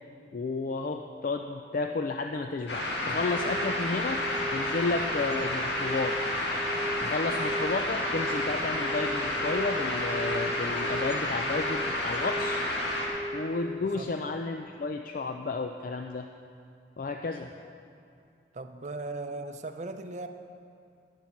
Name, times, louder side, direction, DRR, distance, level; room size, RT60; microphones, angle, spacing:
voice 1, 0.3-6.2 7.0-12.6 13.3-16.3 17.0-17.5, left 3 dB, 50° left, 4 dB, 0.4 m, -32 dB
sound 1, 2.7-13.1, left 1 dB, 80° left, 1.9 m, -31 dB
sound 2, 3.3-13.8, right 1 dB, 5° right, 0.9 m, -38 dB
voice 2, 18.5-20.3, right 2 dB, 40° right, 8 dB, 0.6 m, -37 dB
10.5 x 9.5 x 5.9 m, 2.4 s
head